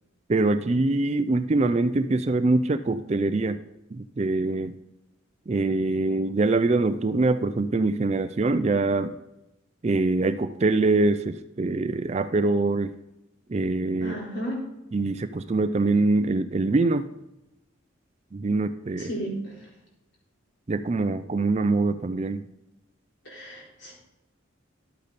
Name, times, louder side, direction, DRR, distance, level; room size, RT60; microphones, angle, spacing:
voice 1, 0.3-3.6 3.9-4.7 5.5-9.1 9.8-12.9 13.5-14.1 14.9-17.0 18.3-19.1 20.7-22.4, right 2 dB, 30° right, 11 dB, 0.4 m, -24 dB
voice 2, 14.0-14.6 19.0-19.5 23.2-23.9, right 1 dB, 55° left, -3 dB, 4.1 m, -33 dB
12.0 x 8.4 x 4.1 m, 0.92 s
head